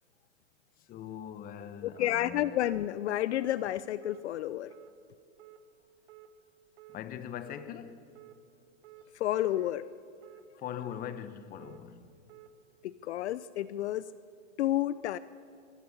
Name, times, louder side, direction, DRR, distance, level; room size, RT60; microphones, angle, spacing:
voice 1, 0.8-2.6 6.9-8.1 10.6-12.1, left 9 dB, 20° left, 1.1 m, -41 dB
voice 2, 1.8-4.7 9.1-9.9 12.8-14.1 14.6-15.2, left 13 dB, 55° left, 0.7 m, -30 dB
sound 1, 2.0-2.2 2.6-2.8 3.3-3.5 4.0-4.2 4.7-4.9 5.4-5.6 6.1-6.3 6.8-7.0 7.5-7.7 8.2-8.4 8.8-9.1 9.5-9.7 10.2-10.4 10.9-11.1 11.6-11.8 12.3-12.5, right 14 dB, 30° right, 1.3 m, -53 dB
26.0 x 24.0 x 7.1 m
hypercardioid pair, 135°, 39 cm